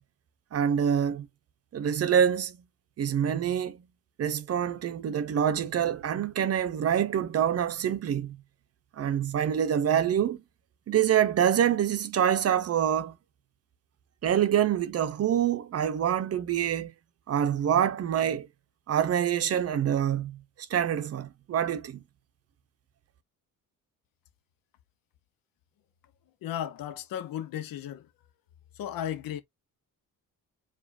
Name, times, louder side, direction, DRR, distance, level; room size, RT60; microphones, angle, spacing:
voice 1, 0.5-1.3 1.7-2.6 3.0-3.8 4.2-8.4 8.9-10.4 10.9-13.1 14.2-16.9 17.3-18.5 18.9-20.4 20.7-22.0, right 9 dB, 45° right, 0.6 m, -26 dB
voice 2, 26.4-28.1 28.7-29.4, left 10 dB, 80° left, 0.7 m, -35 dB
4.9 x 2.4 x 2.4 m
cardioid pair, 150°, 34 cm